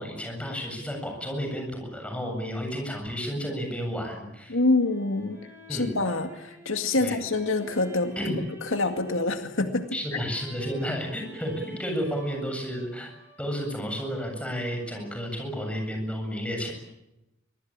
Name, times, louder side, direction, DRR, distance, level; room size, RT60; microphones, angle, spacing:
voice 1, 0.0-4.6 5.7-6.0 7.0-7.2 8.2-8.4 9.9-13.1 13.4-16.7, equal, 5° left, 3 dB, 7.8 m, -32 dB
sound 1, 4.4-15.3, equal, 10° right, 7.0 m, -49 dB
voice 2, 4.5-5.4 5.7-8.1 8.6-9.9, left 2 dB, 80° left, 6 dB, 2.1 m, -26 dB
25.0 x 22.0 x 8.9 m, 0.91 s
head